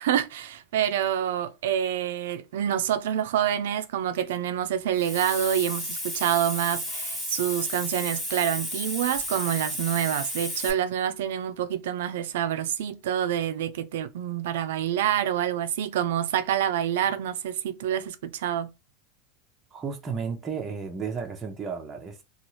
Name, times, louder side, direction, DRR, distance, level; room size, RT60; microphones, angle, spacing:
voice 1, 0.0-18.7, right 10 dB, 90° right, 0.4 m, -27 dB
Hiss, 4.9-10.7, left 1 dB, 15° left, 1.0 m, -33 dB
voice 2, 19.7-22.2, right 5 dB, 20° right, 0.6 m, -33 dB
2.7 x 2.3 x 3.0 m
supercardioid pair, 150°, 0 cm